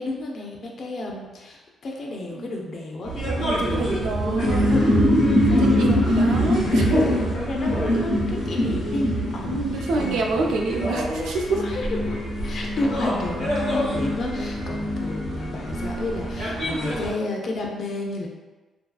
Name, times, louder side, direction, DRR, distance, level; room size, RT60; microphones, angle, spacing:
voice 1, 0.0-4.1 4.7-9.6 9.9-10.8 11.5-18.3, left 2 dB, 55° left, 0 dB, 0.4 m, -32 dB
sound 1, 3.0-17.1, equal, 80° left, 1.0 m, -23 dB
voice 2, 3.2-4.7 5.6-7.0 9.4-11.6, right 3 dB, 90° right, 1 dB, 0.3 m, -27 dB
2.6 x 2.3 x 2.3 m, 1.2 s
cardioid pair, 120°, 0 cm